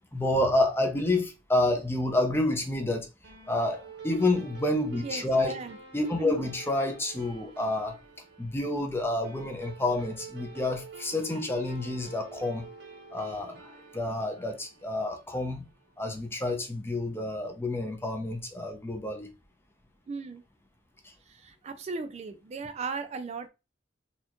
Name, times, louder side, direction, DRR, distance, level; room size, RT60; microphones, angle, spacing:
voice 1, 0.1-3.1 3.5-5.5 5.9-8.0 8.4-12.6 13.1-13.6 13.9-15.7 16.0-19.3, left 2 dB, 15° left, 0.6 m, -29 dB
sound 1, 3.2-16.0, right 5 dB, 65° right, 1.0 m, -48 dB
voice 2, 5.0-5.8 6.2-6.5 20.1-20.4 21.3-23.5, right 4 dB, 35° right, 0.3 m, -36 dB
4.1 x 2.4 x 2.9 m
head